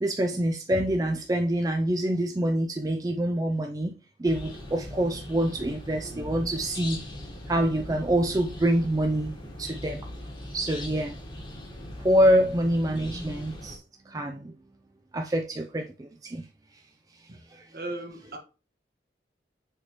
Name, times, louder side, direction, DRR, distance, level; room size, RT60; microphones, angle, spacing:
voice 1, 0.0-7.0 7.5-9.3 9.6-10.0 10.5-11.2 12.0-14.5 15.1-16.5 17.5-17.7, right 1 dB, 20° right, 0.4 m, -26 dB
sound 1, 4.2-13.8, left 1 dB, 25° left, 1.3 m, -40 dB
voice 2, 17.7-18.4, right 2 dB, 55° right, 1.3 m, -36 dB
6.6 x 4.8 x 3.0 m
head